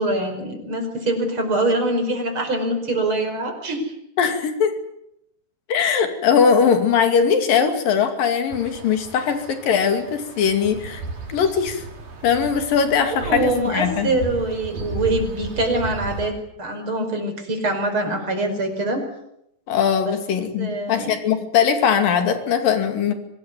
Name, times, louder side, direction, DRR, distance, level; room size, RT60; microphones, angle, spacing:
voice 1, 0.0-3.9 13.0-16.3 16.6-19.0 20.0-20.1 20.6-21.1, right 2 dB, 35° right, 5 dB, 5.8 m, -24 dB
voice 2, 4.2-4.8 5.7-11.0 11.3-11.8 12.2-14.1 19.7-23.1, left 7 dB, 80° left, 7 dB, 4.2 m, -20 dB
sound 1, 8.5-16.3, right 3 dB, 65° right, 5.1 m, -35 dB
24.5 x 19.0 x 9.5 m, 0.79 s
omnidirectional pair, 3.9 m